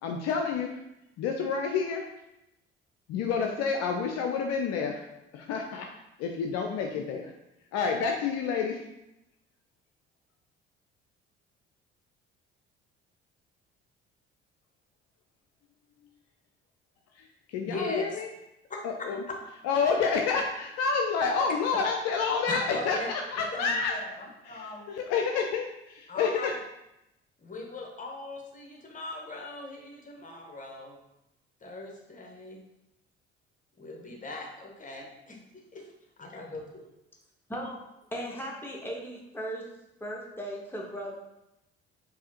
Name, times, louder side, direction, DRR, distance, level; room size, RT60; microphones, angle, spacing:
voice 1, 0.0-0.8 1.2-2.1 3.1-5.0 5.3-5.9 6.2-7.3 7.7-8.8 17.5-18.3 18.8-19.2 19.6-23.9 24.5-26.5, left 5 dB, 60° left, 3 dB, 0.5 m, -29 dB
voice 2, 17.6-18.2 22.5-23.1 23.4-24.9 26.1-26.6 27.4-31.0 31.6-32.6 33.8-35.8 36.2-36.8, left 2 dB, 25° left, 0 dB, 1.0 m, -39 dB
voice 3, 37.5-37.8 38.1-39.6 40.0-41.1, equal, 5° left, -2 dB, 1.1 m, -37 dB
4.7 x 2.7 x 2.8 m, 0.89 s
hypercardioid pair, 55°, 30 cm